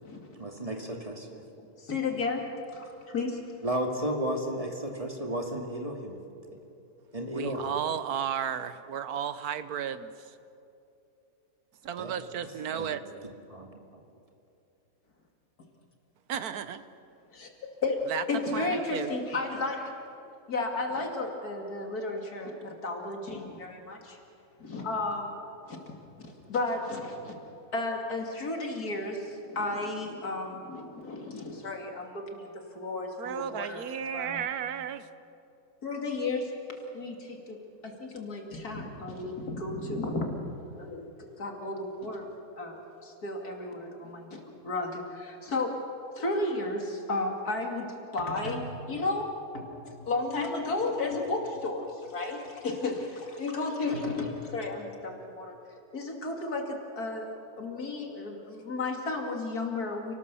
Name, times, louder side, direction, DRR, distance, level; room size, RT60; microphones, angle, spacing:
voice 1, 0.4-1.4 3.6-6.2 7.1-7.8 12.0-12.9 13.5-13.7, right 1 dB, 25° right, 2 dB, 2.4 m, -33 dB
voice 2, 1.6-2.4 2.7-3.4 17.3-17.5 17.8-18.0 18.3-19.9 20.5-24.2 24.6-25.3 25.7-25.8 26.2-27.4 27.7-33.8 34.1-34.4 35.8-36.5 36.9-40.3 40.8-41.1 41.4-42.3 42.6-45.8 46.1-55.5 55.9-60.1, left 2 dB, 85° left, 2 dB, 3.1 m, -33 dB
voice 3, 7.3-10.3 11.8-13.0 16.3-16.8 18.1-18.2 18.5-19.1 33.2-35.1, right 8 dB, 80° right, 13 dB, 1.4 m, -33 dB
29.0 x 19.0 x 7.0 m, 2.8 s
omnidirectional pair, 1.6 m